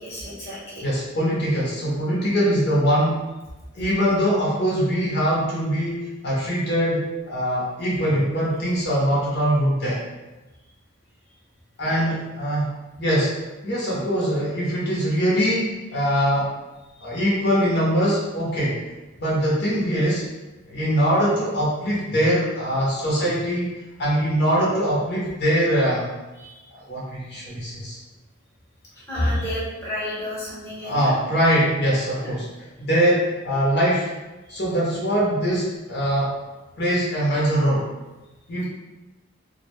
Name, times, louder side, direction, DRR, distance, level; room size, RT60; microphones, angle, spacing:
voice 1, 0.0-0.8 11.8-12.1 26.4-26.5 29.1-31.1 32.2-32.3 34.5-34.6, left 1 dB, 15° left, -8 dB, 0.9 m, -30 dB
voice 2, 0.8-3.2 3.7-10.0 11.8-13.4 13.6-16.5 17.0-18.8 19.2-20.2 20.7-23.7 24.0-26.1 26.9-28.0 30.8-34.1 34.5-36.3 36.8-37.9 38.5-38.7, equal, 55° left, -6 dB, 0.6 m, -22 dB
2.2 x 2.1 x 3.0 m, 1.1 s
head